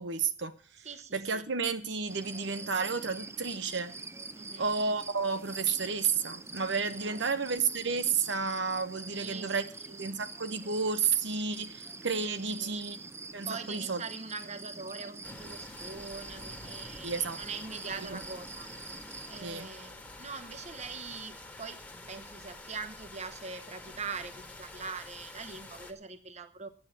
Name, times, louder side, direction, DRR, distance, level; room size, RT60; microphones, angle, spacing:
voice 1, 0.0-0.9 1.1-3.9 4.6-9.6 10.0-13.0 13.3-14.0 17.0-17.4 19.4-19.7, right 5 dB, 70° right, 10 dB, 0.9 m, -31 dB
voice 2, 0.8-1.4 4.3-4.7 7.0-7.2 9.1-10.0 12.3-12.7 13.5-18.7 19.3-21.8 22.1-26.7, right 4 dB, 35° right, 10 dB, 0.9 m, -43 dB
sound 1, 2.1-19.4, right 3 dB, 15° right, 0.5 m, -45 dB
sound 2, 15.2-25.9, left 2 dB, 10° left, 1.4 m, -48 dB
9.2 x 8.9 x 7.4 m, 0.40 s
head